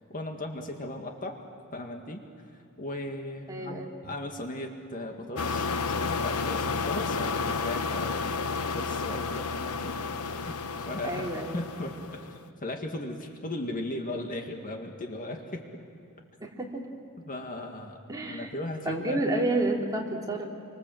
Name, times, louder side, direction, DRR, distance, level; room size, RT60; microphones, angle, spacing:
voice 1, 0.1-1.4 1.7-2.2 2.5-5.7 5.9-8.3 8.7-15.8 17.3-18.0 18.3-19.4, left 1 dB, 40° left, 3 dB, 2.0 m, -37 dB
voice 2, 3.5-3.9 11.0-11.6 16.4-16.9 18.1-18.5 18.9-20.4, right 2 dB, 15° right, -2 dB, 3.4 m, -30 dB
sound 1, 5.4-12.4, left 4 dB, 90° left, 0.9 m, -31 dB
29.5 x 24.5 x 7.7 m, 2.6 s
head